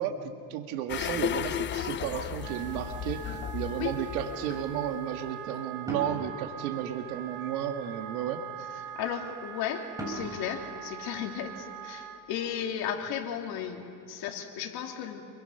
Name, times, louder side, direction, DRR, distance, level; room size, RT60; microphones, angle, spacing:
voice 1, 0.0-8.4, right 9 dB, 85° right, 5 dB, 1.8 m, -33 dB
sound 1, 0.9-5.2 5.5-5.6, left 10 dB, 25° left, 0.6 m, -35 dB
Wind instrument woodwind instrument, 2.3-12.2, right 9 dB, 55° right, 2.5 m, -43 dB
sound 2, 5.9-7.4 10.0-11.8, right 1 dB, 10° right, 5.6 m, -41 dB
voice 2, 8.9-15.2, left 9 dB, 60° left, 2 dB, 3.0 m, -35 dB
28.0 x 23.0 x 5.7 m, 2.7 s
supercardioid pair, 120°, 42 cm